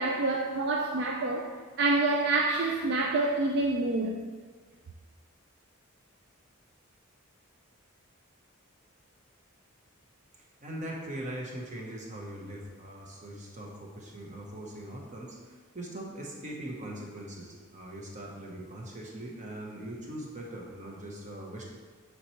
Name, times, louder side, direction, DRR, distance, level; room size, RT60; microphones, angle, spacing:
voice 1, 0.0-4.2, right 2 dB, 55° right, 1 dB, 0.4 m, -27 dB
voice 2, 10.6-21.6, right 1 dB, 35° right, -1 dB, 1.0 m, -41 dB
7.2 x 4.6 x 3.1 m, 1.5 s
head